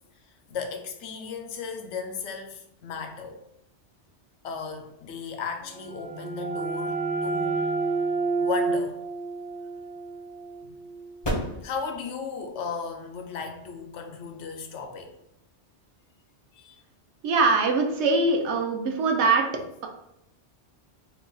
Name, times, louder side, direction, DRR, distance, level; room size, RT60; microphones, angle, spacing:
voice 1, 0.5-3.4 4.4-7.6 8.4-8.9 10.6-10.7 11.6-15.1 16.5-16.8, left 5 dB, 80° left, 4 dB, 0.9 m, -35 dB
sound 1, 5.7-11.2, right 4 dB, 40° right, 0.3 m, -30 dB
sound 2, 9.1-15.9, equal, 35° left, 0.5 m, -39 dB
voice 2, 17.2-19.9, right 3 dB, 75° right, 3 dB, 0.9 m, -23 dB
2.8 x 2.3 x 3.8 m, 0.80 s
omnidirectional pair, 1.2 m